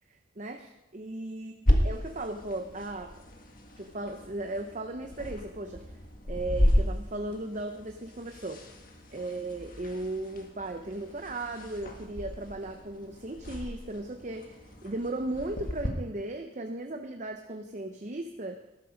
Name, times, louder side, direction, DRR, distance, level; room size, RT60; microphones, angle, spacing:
voice 1, 0.1-1.5 1.8-3.1 3.8-5.9 6.3-8.6 9.1-18.6, right 2 dB, 35° right, 5 dB, 0.7 m, -36 dB
sound 1, 1.7-15.9, equal, 45° left, 1.8 m, -33 dB
13.5 x 13.0 x 5.1 m, 0.96 s
head